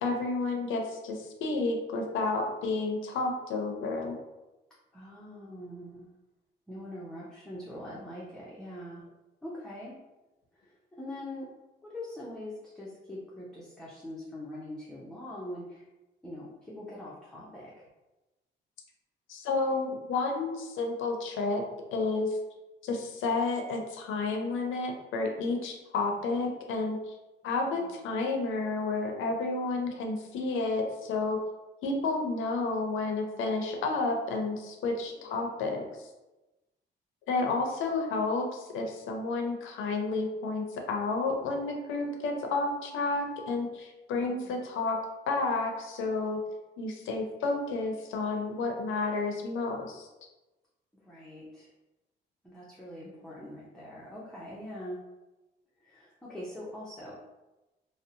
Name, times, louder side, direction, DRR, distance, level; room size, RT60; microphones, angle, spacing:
voice 1, 0.0-4.2 19.3-21.6 21.9-22.4 22.8-27.1 27.4-31.4 31.8-35.8 37.3-45.0 45.3-46.4 46.8-50.1, left 3 dB, 80° left, 2 dB, 0.5 m, -31 dB
voice 2, 4.9-6.1 6.7-9.0 9.4-10.0 10.5-11.5 11.8-15.9 16.2-17.7 27.6-28.1 35.2-35.4 44.1-44.6 51.0-51.7 52.4-55.0 55.8-57.1, left 1 dB, 5° left, -7 dB, 0.5 m, -43 dB
2.6 x 2.0 x 2.6 m, 1.1 s
cardioid pair, 90°, 20 cm